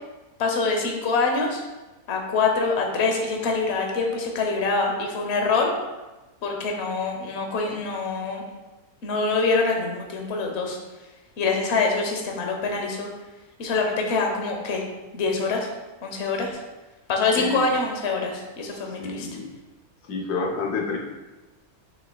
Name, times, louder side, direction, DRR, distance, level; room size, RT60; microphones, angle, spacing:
voice 1, 0.4-1.6 2.1-5.7 6.4-8.4 9.0-10.8 11.4-13.1 13.6-14.8 15.1-15.7 16.0-16.6 17.1-19.3, left 4 dB, 50° left, 2 dB, 1.1 m, -25 dB
voice 2, 17.3-17.8 18.9-19.5 20.1-21.0, left 3 dB, 85° left, 1 dB, 1.3 m, -29 dB
7.0 x 6.1 x 2.3 m, 1.1 s
omnidirectional pair, 1.6 m